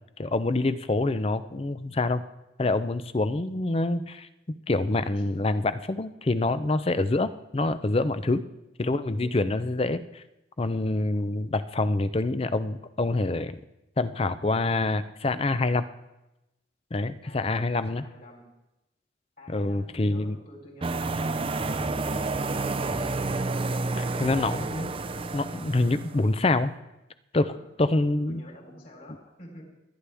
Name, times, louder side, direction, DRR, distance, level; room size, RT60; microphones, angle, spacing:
voice 1, 0.2-2.2 2.6-8.4 8.8-10.2 10.6-13.6 14.0-15.9 16.9-18.0 19.5-20.3 24.0-24.9 25.3-26.7 27.3-27.5 27.8-28.4, left 2 dB, 30° left, 13 dB, 0.5 m, -26 dB
voice 2, 8.1-8.5 17.2-18.4 19.4-22.9 27.4-27.6 27.9-29.6, left 1 dB, 45° left, 0 dB, 3.7 m, -48 dB
sound 1, 20.8-26.3, right 3 dB, 25° right, 0.5 m, -30 dB
29.5 x 9.9 x 3.5 m, 0.95 s
head